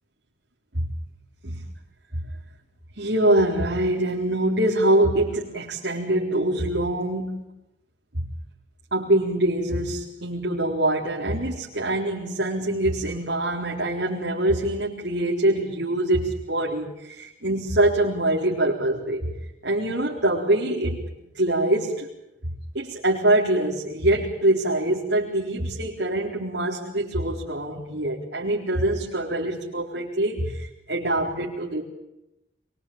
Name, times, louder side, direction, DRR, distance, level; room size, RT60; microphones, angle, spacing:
voice 1, 3.0-7.4 8.1-8.3 8.9-19.3 19.6-21.0 21.3-22.1 22.4-31.8, right 1 dB, 70° right, -5 dB, 4.3 m, -24 dB
26.5 x 23.5 x 8.9 m, 0.88 s
head